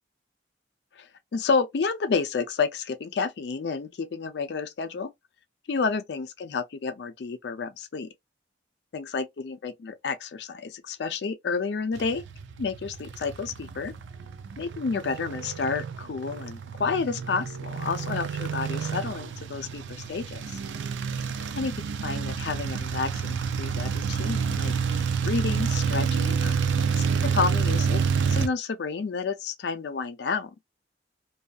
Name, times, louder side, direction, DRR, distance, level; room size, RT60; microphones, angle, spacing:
voice 1, 0.9-5.1 5.7-8.1 8.9-12.2 12.6-13.9 14.6-20.6 21.6-21.7 22.0-26.6 27.0-28.0 28.3-30.5, left 5 dB, 70° left, 0.4 m, -30 dB
sound 1, 12.0-28.5, right 6 dB, 85° right, 0.4 m, -29 dB
2.6 x 2.3 x 2.3 m
head